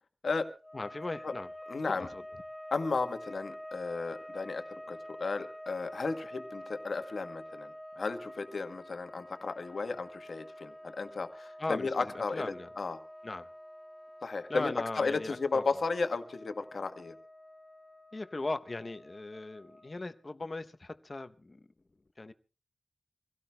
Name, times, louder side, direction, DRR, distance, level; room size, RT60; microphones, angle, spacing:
sound 1, 0.6-20.3, equal, 10° left, 3.1 m, -48 dB
voice 1, 0.7-1.5 1.9-2.2 11.6-12.7 13.2-13.5 14.5-15.6 18.1-21.7 22.2-22.3, left 2 dB, 40° left, 0.7 m, -38 dB
voice 2, 1.7-2.1 2.7-13.0 14.2-17.1, left 4 dB, 75° left, 1.2 m, -34 dB
26.0 x 16.5 x 2.2 m
wide cardioid pair, 90°, 0 cm